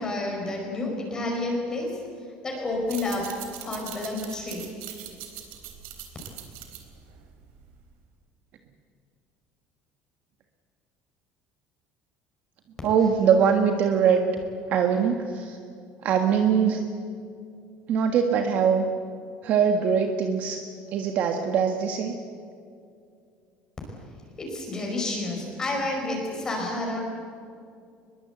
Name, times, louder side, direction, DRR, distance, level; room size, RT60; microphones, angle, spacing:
voice 1, 0.0-2.0 2.4-3.3 3.6-4.6 24.4-27.0, left 2 dB, 20° left, 0 dB, 5.1 m, -30 dB
sound 1, 2.8-7.9, right 10 dB, 80° right, 3.8 m, -42 dB
voice 2, 12.8-14.3 14.7-15.6 16.0-16.8 17.9-18.9 19.4-20.6 20.9-22.2, right 7 dB, 45° right, 4 dB, 1.6 m, -22 dB
23.0 x 22.0 x 8.1 m, 2.4 s
cardioid pair, 170°, 4 cm